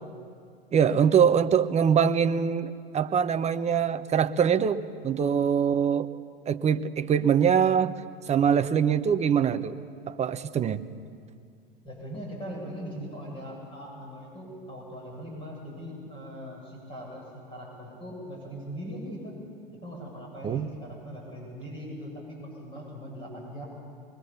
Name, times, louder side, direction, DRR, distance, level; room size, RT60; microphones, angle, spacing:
voice 1, 0.7-6.1 6.5-8.0 8.3-9.8 10.1-10.8 20.4-20.7, right 7 dB, 25° right, 11 dB, 0.9 m, -23 dB
voice 2, 11.8-17.2 17.5-19.4 19.7-23.6, equal, 20° left, -2 dB, 7.8 m, -40 dB
23.5 x 22.0 x 7.1 m, 2.2 s
hypercardioid pair, 95°, 29 cm